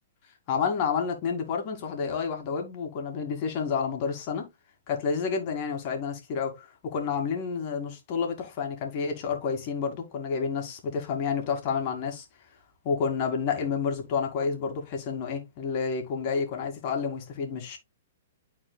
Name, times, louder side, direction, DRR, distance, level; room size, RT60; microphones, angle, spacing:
voice 1, 0.5-4.5 4.9-12.2 12.8-17.8, left 6 dB, 45° left, 2.2 m, -29 dB
11.5 x 4.4 x 2.3 m
hypercardioid pair, 135°, 0 cm